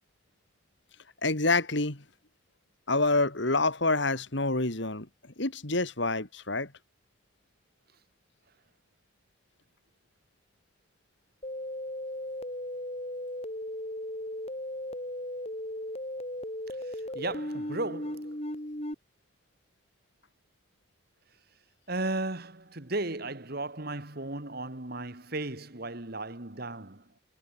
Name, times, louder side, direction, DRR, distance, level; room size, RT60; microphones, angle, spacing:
voice 1, 1.2-2.0 2.9-5.1 5.4-6.7, left 2 dB, 60° left, 2.6 m, -27 dB
sound 1, 11.4-18.9, left 1 dB, 30° left, 6.0 m, -36 dB
voice 2, 16.9-18.4 21.9-27.0, right 2 dB, 50° right, 2.2 m, -35 dB
head